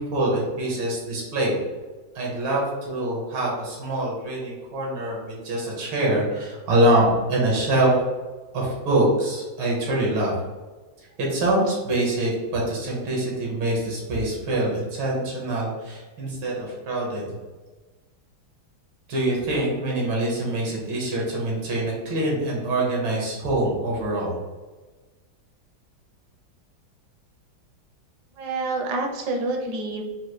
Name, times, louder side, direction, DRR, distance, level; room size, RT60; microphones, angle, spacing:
voice 1, 0.0-1.6 2.2-7.9 8.5-10.3 11.2-17.4 19.1-24.4, right 1 dB, 85° right, -3 dB, 2.0 m, -24 dB
voice 2, 28.4-30.1, right 2 dB, 70° right, 2 dB, 1.1 m, -27 dB
4.9 x 2.4 x 3.0 m, 1.3 s
omnidirectional pair, 2.2 m